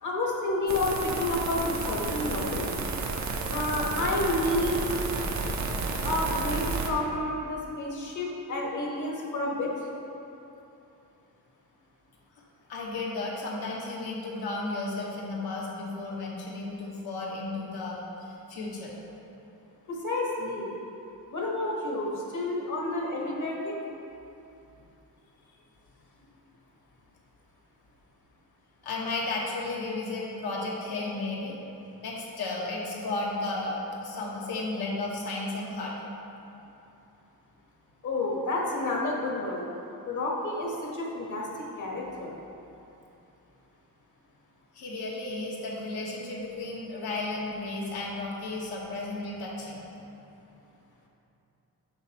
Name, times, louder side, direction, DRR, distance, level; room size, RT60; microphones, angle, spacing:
voice 1, 0.0-2.6 3.5-4.8 6.0-9.8 19.9-20.7 21.3-23.7 38.0-39.7 40.1-42.3, left 2 dB, 50° left, -2 dB, 1.3 m, -30 dB
sound 1, 0.7-6.9, right 4 dB, 45° right, 0.7 m, -31 dB
voice 2, 12.7-19.0 28.8-31.6 32.0-35.9 44.7-50.1, left 2 dB, 75° left, -3 dB, 1.4 m, -34 dB
7.7 x 6.2 x 3.0 m, 2.9 s
cardioid pair, 115°, 38 cm